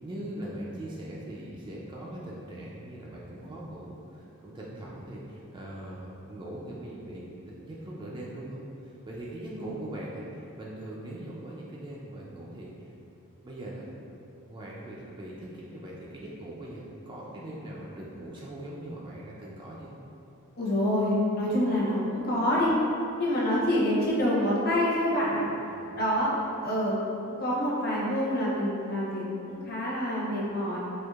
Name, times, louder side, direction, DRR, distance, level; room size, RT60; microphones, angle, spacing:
voice 1, 0.0-7.3 7.6-12.9 13.4-13.9 14.5-19.9 25.7-26.0, right 1 dB, 20° right, -5 dB, 0.3 m, -41 dB
voice 2, 20.6-22.7 23.2-25.4 25.9-26.3 26.6-27.0 27.2-30.8, left 1 dB, 45° left, -6 dB, 0.8 m, -27 dB
4.4 x 2.5 x 2.3 m, 2.8 s
head